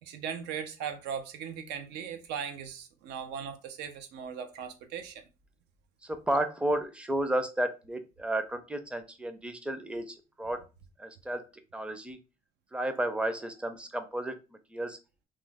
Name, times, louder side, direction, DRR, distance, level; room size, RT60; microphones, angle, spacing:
voice 1, 0.0-5.2, right 7 dB, 85° right, 0.6 m, -38 dB
voice 2, 6.0-10.7 11.0-12.2 12.7-14.4 14.7-15.0, right 1 dB, 5° right, 0.4 m, -32 dB
3.0 x 2.1 x 3.4 m
cardioid pair, 110°, 17 cm